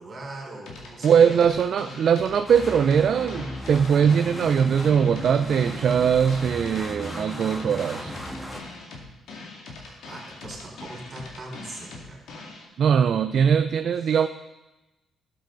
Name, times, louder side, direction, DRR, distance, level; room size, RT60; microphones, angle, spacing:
voice 1, 0.0-1.5 9.8-12.2 14.0-14.1, right 2 dB, 40° right, -1 dB, 4.3 m, -40 dB
sound 1, 0.7-12.7, left 3 dB, 80° left, 2.3 m, -42 dB
voice 2, 1.0-8.2 12.8-14.3, right 7 dB, 60° right, 9 dB, 0.4 m, -21 dB
sound 2, 2.5-8.6, equal, 5° left, 1.7 m, -36 dB
13.0 x 7.8 x 3.9 m, 1.0 s
cardioid pair, 90°, 0 cm